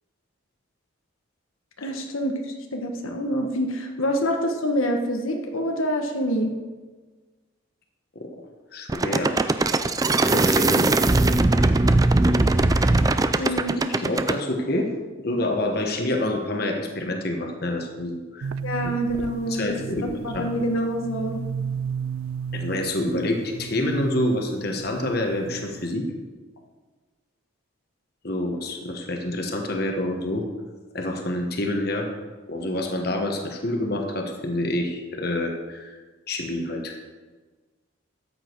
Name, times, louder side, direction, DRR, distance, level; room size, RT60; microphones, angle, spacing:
voice 1, 1.8-6.5 13.4-13.9 18.6-19.8 20.2-21.4, equal, 80° left, 3 dB, 1.4 m, -26 dB
voice 2, 8.7-9.3 10.3-10.9 13.9-14.9 15.2-18.5 18.8-18.9 19.5-20.1 20.3-20.5 22.5-26.1 28.2-30.4 30.9-32.1 32.5-35.9 36.3-37.0, left 1 dB, 50° left, 3 dB, 1.3 m, -27 dB
sound 1, 8.9-14.4, right 2 dB, 15° right, 0.3 m, -20 dB
sound 2, 18.4-25.9, right 6 dB, 85° right, 0.4 m, -34 dB
13.5 x 8.8 x 4.6 m, 1.3 s
head